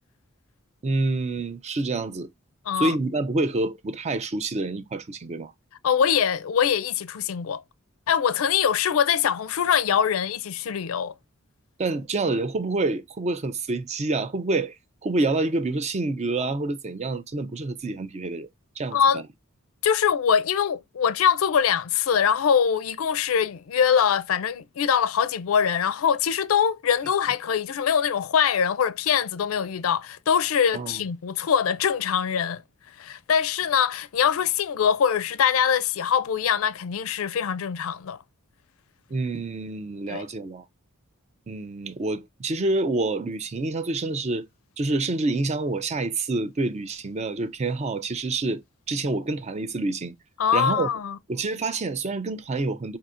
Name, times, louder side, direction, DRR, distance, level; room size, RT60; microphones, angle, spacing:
voice 1, 0.8-2.3 2.7-5.5 11.8-14.7 15.0-18.5 18.8-19.0 30.7-31.0 39.1-40.6 41.5-44.5 44.8-48.6 48.9-50.1 50.5-50.9 51.3-53.0, right 2 dB, 30° right, 0.4 m, -27 dB
voice 2, 2.7-3.0 5.8-7.6 8.1-11.1 18.9-19.2 19.8-32.6 33.0-38.2 40.1-40.2 50.4-51.2, left 7 dB, 75° left, 0.4 m, -23 dB
5.5 x 2.7 x 2.4 m
head